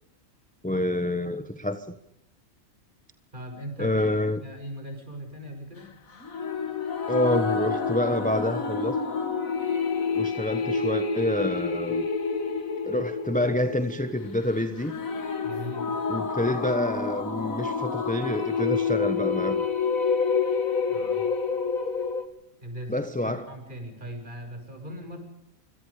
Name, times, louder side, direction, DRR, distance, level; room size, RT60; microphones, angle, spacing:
voice 1, 0.6-1.9 3.8-4.4 7.1-9.0 10.1-12.1 12.9-15.0 16.1-19.7 22.9-23.5, left 1 dB, 5° left, 1.1 m, -27 dB
voice 2, 3.3-4.0 4.4-5.9 15.4-15.9 20.9-21.2 22.6-25.2, equal, 35° right, 7.3 m, -39 dB
sound 1, 6.2-22.2, left 5 dB, 85° left, 2.4 m, -28 dB
26.5 x 26.0 x 5.0 m
omnidirectional pair, 1.4 m